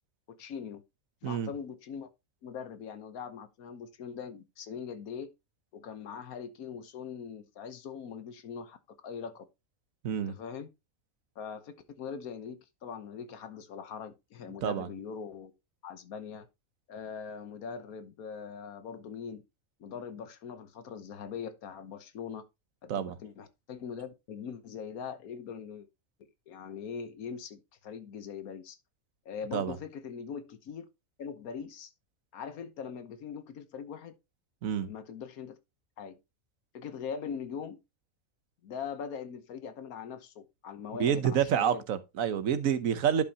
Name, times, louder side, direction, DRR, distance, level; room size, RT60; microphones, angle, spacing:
voice 1, 0.3-0.8 1.2-2.1 2.4-5.3 5.7-8.8 9.0-9.5 10.3-10.7 11.4-15.5 15.8-16.5 16.9-19.4 19.8-22.4 22.8-25.9 26.5-28.8 29.2-30.9 31.2-31.9 32.3-34.1 34.8-35.6 36.0-36.2 36.7-37.8 38.6-41.8, left 6 dB, 85° left, 1.4 m, -41 dB
voice 2, 41.0-43.2, right 8 dB, 70° right, 1.2 m, -28 dB
11.0 x 5.5 x 2.8 m
omnidirectional pair, 1.5 m